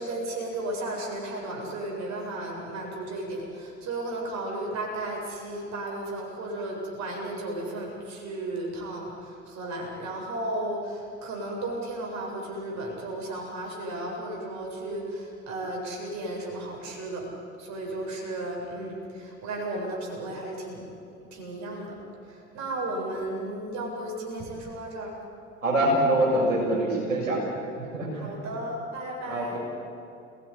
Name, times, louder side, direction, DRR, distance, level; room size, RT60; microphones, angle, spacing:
voice 1, 0.0-17.3 17.6-20.9 21.3-22.0 22.3-25.1 28.1-29.6, right 1 dB, 45° right, -1 dB, 8.0 m, -34 dB
voice 2, 25.6-27.4 27.8-28.3 29.3-29.6, right 1 dB, 80° right, -3 dB, 7.1 m, -25 dB
29.5 x 18.5 x 10.0 m, 2.6 s
figure-of-eight pair, 70°, 39 cm